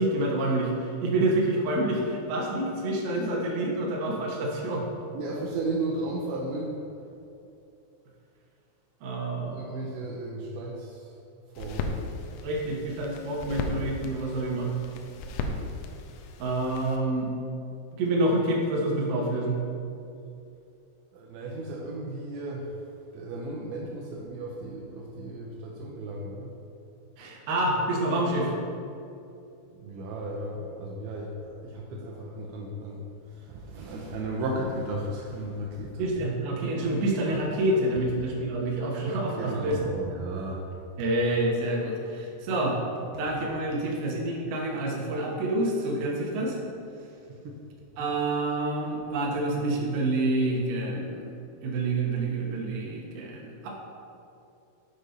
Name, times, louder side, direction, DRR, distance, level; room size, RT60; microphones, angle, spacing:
voice 1, 0.0-4.8 9.0-9.7 12.4-14.7 16.4-17.3 18.0-19.6 27.2-28.5 36.0-39.8 41.0-42.8 43.2-46.6 48.0-51.3 51.6-53.7, right 1 dB, 75° right, -2 dB, 2.3 m, -27 dB
voice 2, 5.1-6.9 9.5-11.2 11.5-12.0 21.1-26.6 29.7-36.1 39.4-40.7 47.3-47.6 47.9-48.1, right 2 dB, 90° right, -2 dB, 2.6 m, -35 dB
sound 1, 11.6-17.0, left 3 dB, 85° left, 2.7 m, -36 dB
7.3 x 6.6 x 4.0 m, 2.7 s
omnidirectional pair, 6.0 m